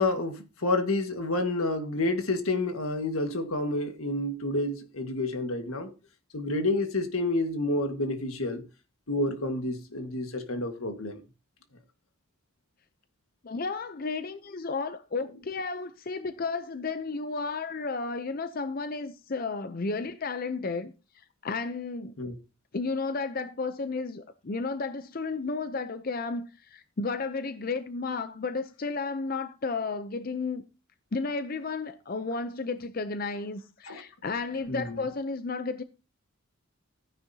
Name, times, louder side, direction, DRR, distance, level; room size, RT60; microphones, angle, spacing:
voice 1, 0.0-5.9 6.3-8.6 9.1-11.2 22.2-22.4 33.8-34.0 34.7-35.0, left 2 dB, 85° left, 1.6 m, -29 dB
voice 2, 13.4-20.9 21.4-22.1 22.7-30.6 31.1-35.8, left 4 dB, 45° left, 0.5 m, -33 dB
14.5 x 9.8 x 2.8 m
head